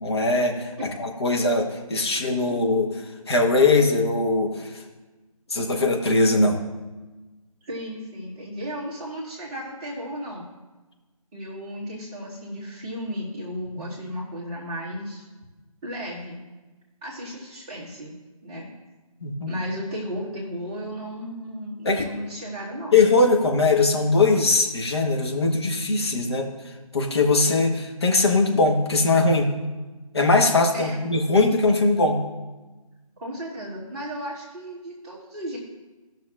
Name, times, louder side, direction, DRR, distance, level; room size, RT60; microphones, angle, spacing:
voice 1, 0.0-0.7 1.0-2.9 3.3-4.7 5.5-6.6 19.2-19.5 21.8-22.1 22.9-26.5 26.9-29.5 30.1-32.2, left 3 dB, 45° left, 2 dB, 1.1 m, -20 dB
voice 2, 7.6-10.5 11.3-15.2 15.8-16.4 17.0-18.1 18.4-18.7 19.5-23.0 30.7-31.0 33.2-35.6, equal, 10° right, -7 dB, 1.2 m, -34 dB
16.5 x 6.1 x 2.4 m, 1.2 s
figure-of-eight pair, 155°, 19 cm